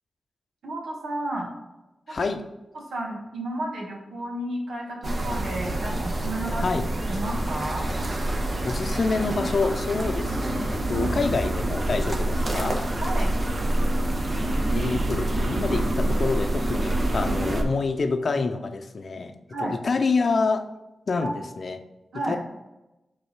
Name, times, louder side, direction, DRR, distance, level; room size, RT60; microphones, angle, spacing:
voice 1, 0.6-1.5 2.2-2.4 2.7-6.8 7.1-7.9 11.0-11.2 12.6-12.7 13.0-13.3 16.1-16.2 19.5-19.7 21.2-21.3 22.1-22.4, right 1 dB, 85° right, -1 dB, 1.5 m, -32 dB
voice 2, 2.1-2.4 6.6-6.8 8.6-12.8 14.7-19.3 19.6-20.7 21.1-21.8 22.3-22.4, left 4 dB, 60° left, 7 dB, 0.6 m, -27 dB
sound 1, 5.0-17.6, right 1 dB, 45° right, 1.2 m, -26 dB
5.4 x 4.0 x 5.9 m, 0.99 s
cardioid pair, 45°, 0 cm